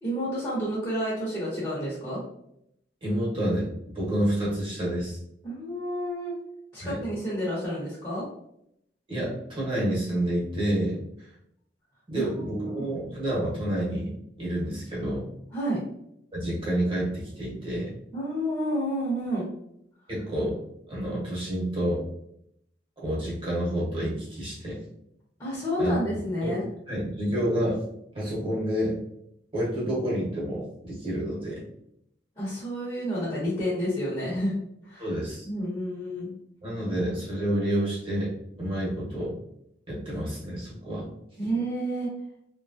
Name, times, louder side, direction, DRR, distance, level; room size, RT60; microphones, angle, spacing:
voice 1, 0.0-2.2 5.4-6.3 6.7-8.2 12.2-12.8 15.5-15.8 18.1-19.4 25.4-26.7 32.4-34.5 34.8-35.1 35.4-36.3 41.4-42.1, equal, 25° left, -9 dB, 1.0 m, -30 dB
voice 2, 3.0-3.7 3.9-5.2 6.8-7.0 9.1-11.0 12.1-14.1 14.4-15.3 16.3-17.9 20.1-20.6 20.9-22.0 23.0-24.8 25.8-26.0 26.4-26.6 26.9-27.8 28.1-29.0 29.5-31.6 35.0-35.5 36.6-38.3 38.6-39.3 39.9-41.1, right 1 dB, 30° right, -6 dB, 1.1 m, -29 dB
2.9 x 2.3 x 2.6 m, 0.75 s
head